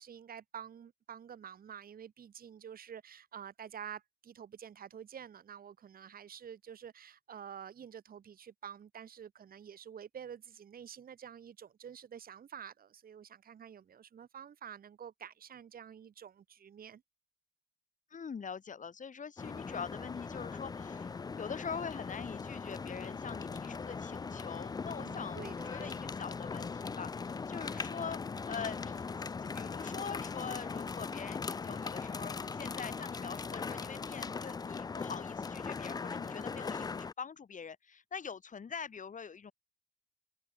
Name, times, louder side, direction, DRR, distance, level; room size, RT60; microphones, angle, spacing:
voice 1, 0.0-17.0 25.0-25.9, right 8 dB, 45° right, 1.3 m, -49 dB
voice 2, 18.1-21.1 21.4-28.2 28.5-39.5, left 6 dB, 40° left, 2.9 m, -44 dB
sound 1, 19.4-37.1, left 5 dB, 20° left, 0.4 m, -40 dB
open air
cardioid pair, 90°, 20 cm